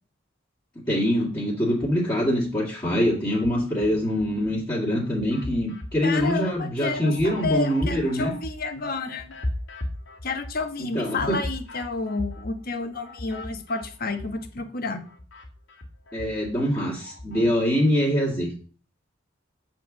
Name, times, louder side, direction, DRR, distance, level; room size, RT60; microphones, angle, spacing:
voice 1, 0.9-8.3 10.9-11.4 16.1-18.5, equal, 20° left, -7 dB, 2.2 m, -24 dB
sound 1, 1.7-2.5 2.9-4.5 4.9-14.6 14.9-17.5, left 1 dB, 80° left, 1.9 m, -38 dB
voice 2, 6.0-9.3 10.2-15.0, left 3 dB, 50° left, 7 dB, 1.3 m, -30 dB
8.4 x 4.6 x 7.3 m, 0.40 s
head